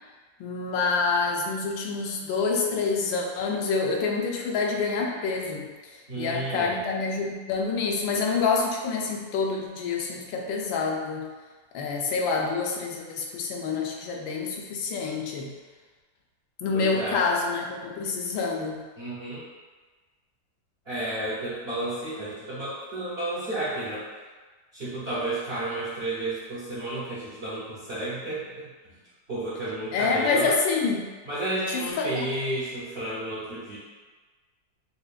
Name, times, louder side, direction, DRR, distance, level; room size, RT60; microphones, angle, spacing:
voice 1, 0.4-11.3 11.7-15.5 16.6-18.8 29.9-31.1 31.7-32.3, left 4 dB, 90° left, 0 dB, 1.3 m, -27 dB
voice 2, 6.1-6.8 16.7-17.3 19.0-19.4 20.8-24.1 24.7-29.0 29.3-30.5 31.2-33.8, right 1 dB, 50° right, -10 dB, 0.7 m, -32 dB
5.3 x 2.3 x 2.4 m, 1.3 s
omnidirectional pair, 2.0 m